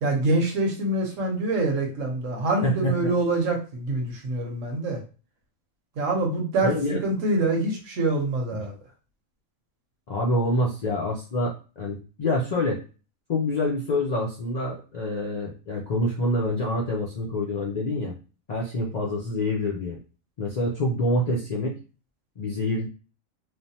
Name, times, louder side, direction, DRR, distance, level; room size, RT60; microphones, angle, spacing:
voice 1, 0.0-5.0 6.0-6.7 7.0-8.7, right 2 dB, 70° right, 2 dB, 1.1 m, -25 dB
voice 2, 2.6-3.1 6.6-7.0 8.5-8.6 10.1-12.8 13.3-18.1 18.5-20.0 20.4-21.7 22.4-22.9, left 1 dB, 70° left, -2 dB, 0.4 m, -26 dB
3.2 x 2.0 x 2.7 m, 0.35 s
omnidirectional pair, 1.4 m